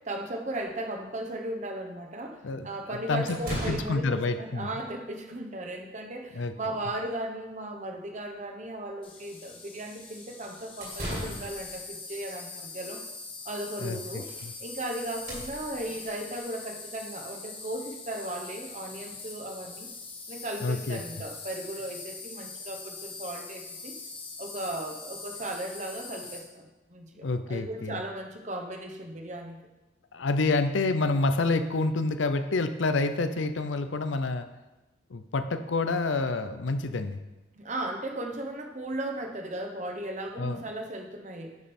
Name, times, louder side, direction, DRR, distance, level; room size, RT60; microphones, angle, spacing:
voice 1, 0.0-13.0 13.4-14.3 14.6-19.9 20.3-23.9 24.4-29.6 37.5-41.6, right 1 dB, 40° right, 3 dB, 0.9 m, -36 dB
sound 1, 0.7-0.8 2.6-2.7 3.3-4.1 10.6-11.7 13.5-13.6 13.9-14.5 14.8-14.9 15.1-16.4, right 1 dB, 55° right, 2.7 m, -38 dB
voice 2, 2.4-4.7 6.3-6.5 13.8-14.0 14.4-14.5 20.6-21.0 27.2-28.0 30.1-34.5 35.1-37.2 40.4-40.6, left 3 dB, 80° left, 10 dB, 0.6 m, -28 dB
Insect, 9.0-26.4, left 4 dB, 30° left, 1.3 m, -42 dB
10.5 x 5.3 x 4.3 m, 1.1 s
head